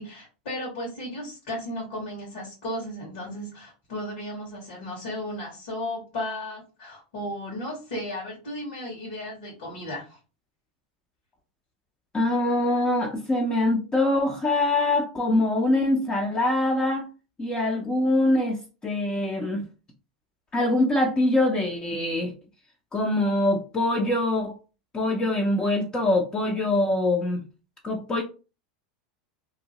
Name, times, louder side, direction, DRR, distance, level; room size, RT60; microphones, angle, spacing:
voice 1, 0.0-10.2, left 1 dB, 70° left, -4 dB, 1.5 m, -35 dB
voice 2, 12.1-17.1 17.4-19.6 20.5-22.3 22.9-24.5 24.9-27.4 27.8-28.2, left 1 dB, 20° left, 0 dB, 0.6 m, -24 dB
2.8 x 2.1 x 2.8 m, 0.32 s
hypercardioid pair, 100°, 4 cm